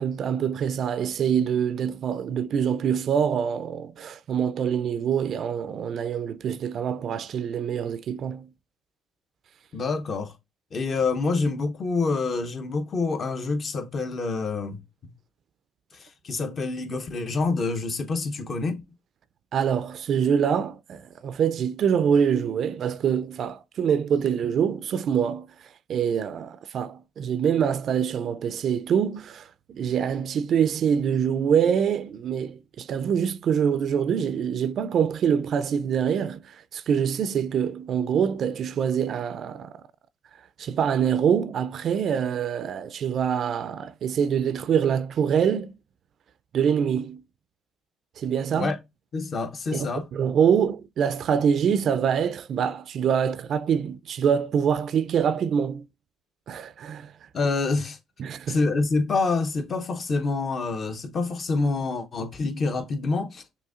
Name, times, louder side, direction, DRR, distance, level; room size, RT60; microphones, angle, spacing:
voice 1, 0.0-8.5 19.5-25.5 25.9-39.7 40.6-45.7 46.5-47.2 48.2-48.7 49.7-55.8 56.5-57.1 58.2-58.6, right 7 dB, 60° right, 0.3 m, -25 dB
voice 2, 9.7-10.3 10.7-15.1 15.9-18.8 48.5-48.8 49.1-50.1 57.3-58.0 58.5-63.4, left 3 dB, 45° left, 0.8 m, -27 dB
6.0 x 2.7 x 2.4 m
supercardioid pair, 75°, 0 cm